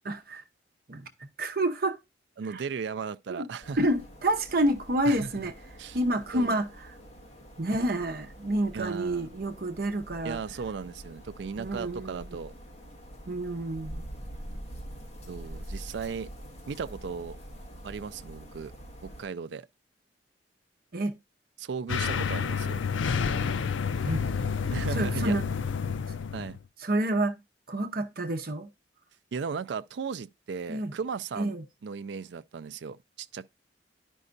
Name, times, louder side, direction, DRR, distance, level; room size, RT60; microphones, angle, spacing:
voice 1, 0.0-0.4 0.9-2.0 2.5-2.6 3.3-3.5 3.8-5.5 5.9-6.9 7.6-10.4 11.6-12.4 13.3-14.1 20.9-21.1 24.0-24.3 24.9-25.4 26.8-27.4 27.7-28.7 30.7-30.9 31.3-31.6, right 1 dB, 55° right, 0.8 m, -29 dB
voice 2, 2.4-3.8 5.1-5.3 5.8-6.0 6.3-6.6 8.7-9.3 10.2-12.5 15.3-16.3 16.7-17.4 17.8-18.7 19.0-19.7 21.6-22.8 24.7-25.3 26.3-26.6 29.3-31.5 31.8-33.5, right 5 dB, 70° right, 0.4 m, -36 dB
sound 1, 3.6-19.2, equal, 35° left, 1.5 m, -45 dB
sound 2, 21.9-26.6, left 6 dB, 85° left, 0.5 m, -29 dB
11.0 x 5.4 x 2.5 m
head